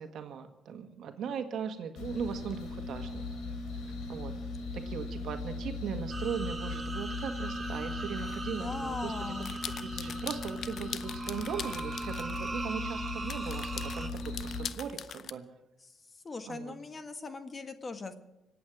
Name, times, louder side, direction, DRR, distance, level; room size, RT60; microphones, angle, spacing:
voice 1, 0.0-3.2 4.1-4.3 4.7-9.1 9.5-15.4 16.4-16.7, right 7 dB, 70° right, 7 dB, 1.7 m, -39 dB
sound 1, 2.0-14.7, left 2 dB, 85° left, 3.7 m, -38 dB
sound 2, 6.1-14.1, right 3 dB, 25° right, 1.2 m, -41 dB
voice 2, 8.5-9.5 15.8-15.9 16.2-18.1, left 3 dB, 35° left, 9 dB, 1.5 m, -40 dB
sound 3, 9.4-12.5 13.1-15.3, left 8 dB, 60° left, 0.6 m, -42 dB
25.5 x 8.7 x 6.1 m, 0.97 s
cardioid pair, 90°, 0 cm